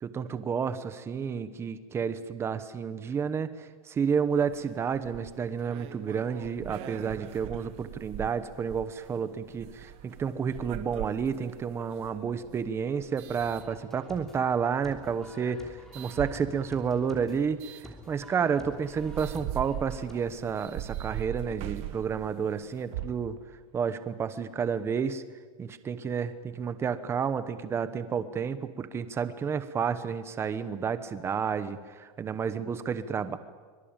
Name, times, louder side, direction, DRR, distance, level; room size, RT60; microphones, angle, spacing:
voice 1, 0.0-17.6 18.1-23.4 23.7-25.2 25.6-31.8 32.2-33.4, right 6 dB, 15° right, 12 dB, 1.0 m, -30 dB
sound 1, 4.3-14.3 15.0-16.2 17.6-17.9 18.4-18.5 18.8-23.0, right 13 dB, 35° right, 1.2 m, -42 dB
sound 2, 13.4-20.1, equal, ahead, 3.1 m, -49 dB
sound 3, 16.0-17.8 18.0-18.7 19.0-19.1 19.3-20.4 20.7-20.8 21.4-21.5 22.5-22.6 22.9-23.9, right 10 dB, 50° right, 2.0 m, -43 dB
24.5 x 23.5 x 8.9 m, 1.5 s
supercardioid pair, 175°, 19 cm